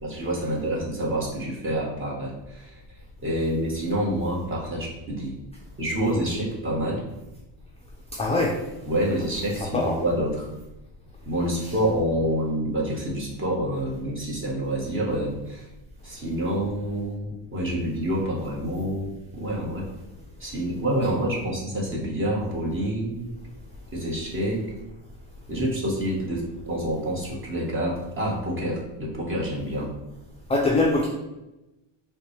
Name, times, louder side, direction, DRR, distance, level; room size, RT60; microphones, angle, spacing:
voice 1, 0.0-2.8 3.2-5.4 5.8-7.0 8.9-10.4 11.3-15.7 16.0-19.9 20.4-23.3 23.9-24.7 25.5-29.9, right 1 dB, 25° right, -3 dB, 1.2 m, -27 dB
voice 2, 8.1-8.6 9.6-10.0 11.6-11.7 30.5-31.1, left 2 dB, 15° left, -2 dB, 0.4 m, -23 dB
5.6 x 2.3 x 3.2 m, 0.98 s
cardioid pair, 115°, 46 cm